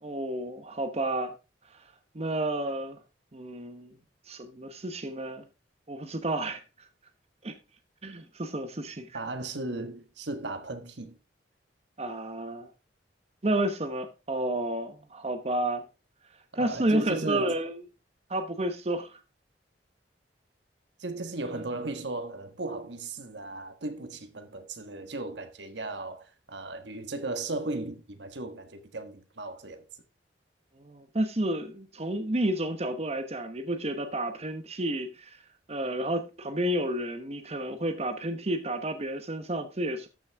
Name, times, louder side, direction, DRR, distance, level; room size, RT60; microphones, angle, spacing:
voice 1, 0.0-1.3 2.1-3.0 3.3-3.9 4.3-5.4 5.9-6.6 7.4-7.5 8.0-9.2 12.0-12.7 13.4-15.8 16.5-17.8 18.3-19.2 30.8-35.4 35.7-40.1, right 1 dB, 35° right, 1.0 m, -31 dB
voice 2, 9.1-11.2 16.5-17.6 21.0-29.8, right 2 dB, 75° right, 1.4 m, -36 dB
13.0 x 6.3 x 3.5 m
head